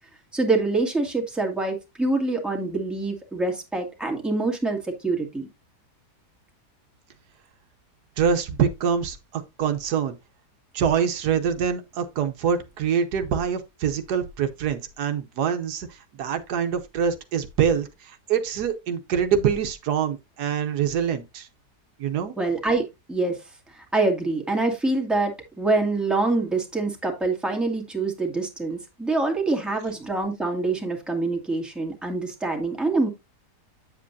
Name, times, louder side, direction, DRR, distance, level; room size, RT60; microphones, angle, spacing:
voice 1, 0.3-5.5 22.4-23.4 23.7-33.1, right 3 dB, ahead, 1.7 m, -25 dB
voice 2, 8.2-10.1 10.7-21.5 22.0-22.4, right 7 dB, 75° right, 1.3 m, -25 dB
8.7 x 7.4 x 2.6 m
omnidirectional pair, 1.7 m